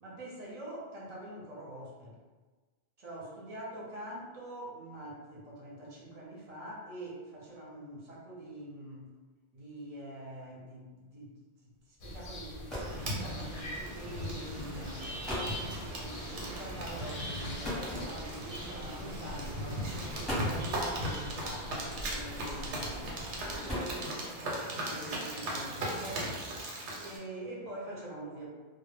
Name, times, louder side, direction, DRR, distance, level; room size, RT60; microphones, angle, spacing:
voice 1, 0.0-2.2 3.0-9.1 9.5-13.4 14.0-28.5, right 1 dB, 45° right, -5 dB, 0.6 m, -45 dB
sound 1, 12.0-23.6, left 1 dB, 60° left, 0.6 m, -45 dB
sound 2, 12.5-13.1 14.1-14.3 14.9-15.0 15.2-15.6 17.6-18.5 19.4-19.6 20.1-20.7 22.0-22.5 23.3-24.4, equal, ahead, 0.7 m, -38 dB
sound 3, 12.7-27.2, right 1 dB, 90° right, 0.9 m, -38 dB
2.0 x 2.0 x 3.2 m, 1.3 s
omnidirectional pair, 1.2 m